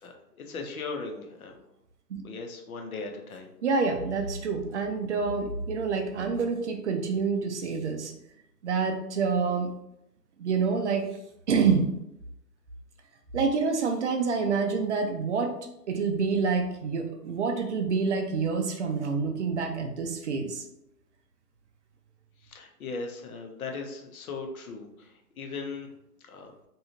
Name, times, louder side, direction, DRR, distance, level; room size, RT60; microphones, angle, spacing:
voice 1, 0.0-1.5 2.2-3.5 22.4-25.9 26.2-26.5, left 4 dB, 60° left, 3 dB, 0.7 m, -38 dB
voice 2, 3.6-8.1 8.6-9.7 10.4-11.1 11.5-11.9 13.3-15.5 15.9-20.6, right 5 dB, 50° right, 5 dB, 0.5 m, -27 dB
2.7 x 2.3 x 2.9 m, 0.82 s
hypercardioid pair, 145°, 48 cm